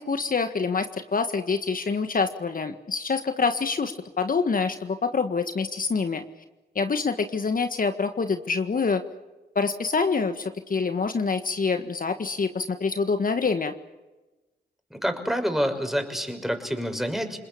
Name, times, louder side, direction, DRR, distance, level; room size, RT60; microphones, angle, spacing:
voice 1, 0.0-6.2 6.8-9.0 9.6-13.7, left 4 dB, 50° left, 8 dB, 1.8 m, -26 dB
voice 2, 14.9-17.4, equal, ahead, 6 dB, 6.1 m, -27 dB
29.0 x 20.5 x 8.7 m, 1.1 s
cardioid pair, 55°, 18 cm